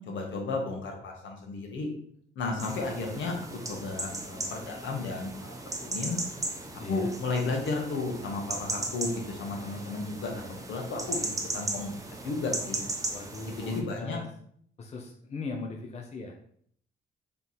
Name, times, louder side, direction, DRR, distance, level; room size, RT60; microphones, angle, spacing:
voice 1, 0.0-1.9 2.3-3.4 3.7-5.6 5.8-6.2 6.9-11.2 11.5-11.9 12.2-12.8 13.6-14.2, left 3 dB, 70° left, 1 dB, 1.1 m, -33 dB
sound 1, 2.6-13.8, right 2 dB, 15° right, 0.7 m, -37 dB
voice 2, 6.8-7.1 11.1-11.4 13.1-14.3 14.8-16.4, left 3 dB, 35° left, 2 dB, 0.6 m, -39 dB
3.4 x 3.0 x 4.0 m, 0.63 s
cardioid pair, 90°, 20 cm